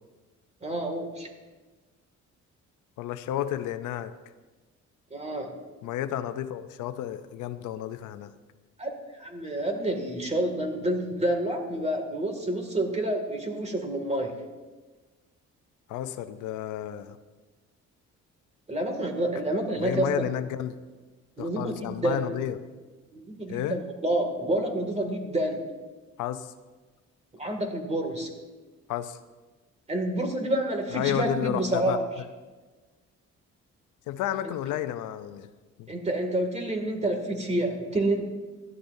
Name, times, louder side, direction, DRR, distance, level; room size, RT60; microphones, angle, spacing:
voice 1, 0.6-1.3 5.1-5.6 8.8-14.4 18.7-20.1 21.4-22.3 23.1-25.6 27.3-28.3 29.9-32.0 35.9-38.2, right 1 dB, 20° right, 4 dB, 2.2 m, -28 dB
voice 2, 3.0-4.1 5.8-8.3 15.9-17.2 19.8-20.7 21.4-22.6 23.5-23.8 26.2-26.5 28.9-29.2 30.9-32.0 34.1-35.5 35.8-35.9, left 11 dB, 90° left, 11 dB, 0.6 m, -31 dB
16.5 x 12.5 x 2.7 m, 1.3 s
cardioid pair, 90°, 30 cm